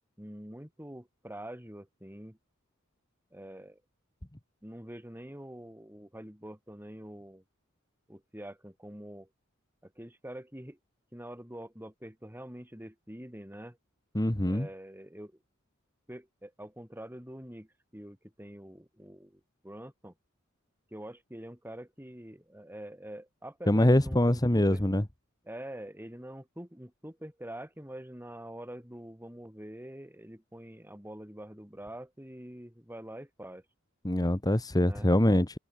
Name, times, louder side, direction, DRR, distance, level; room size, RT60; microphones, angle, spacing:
voice 1, 0.2-2.4 3.3-3.8 4.6-7.4 8.1-9.3 9.8-10.8 11.1-13.8 14.4-15.4 16.1-20.1 20.9-24.8 25.4-33.6 34.8-35.1, right 1 dB, 10° right, 6.7 m, -45 dB
voice 2, 14.1-14.7 23.7-25.0 34.0-35.6, left 1 dB, 20° left, 1.5 m, -24 dB
head